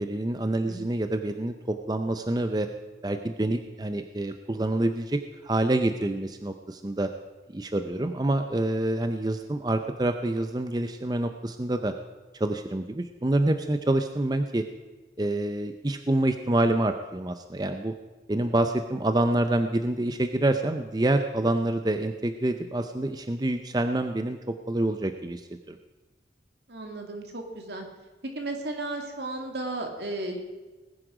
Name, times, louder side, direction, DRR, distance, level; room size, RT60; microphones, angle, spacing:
voice 1, 0.0-2.7 3.0-7.1 7.5-11.9 12.3-14.6 15.2-17.9 18.3-25.8, right 1 dB, 20° right, 8 dB, 0.5 m, -27 dB
voice 2, 26.7-27.9 28.3-30.4, right 2 dB, 70° right, 3 dB, 2.3 m, -34 dB
19.5 x 10.0 x 5.0 m, 1.2 s
head